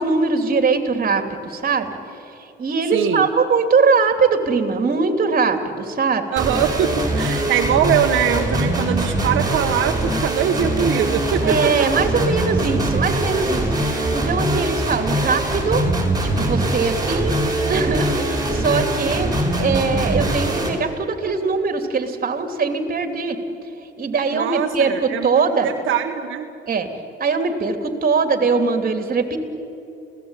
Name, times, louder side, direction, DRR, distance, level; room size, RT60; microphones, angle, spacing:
voice 1, 0.0-1.9 2.4-6.3 11.4-15.8 16.2-23.4 24.0-25.7 26.7-26.9 27.2-29.4, right 4 dB, 45° right, 6 dB, 3.0 m, -21 dB
voice 2, 2.9-3.3 6.3-11.9 24.3-26.5, right 9 dB, 80° right, 3 dB, 1.4 m, -22 dB
sound 1, 6.4-20.7, right 1 dB, 20° right, 5.7 m, -22 dB
29.0 x 17.5 x 9.2 m, 2.8 s
cardioid pair, 90°, 20 cm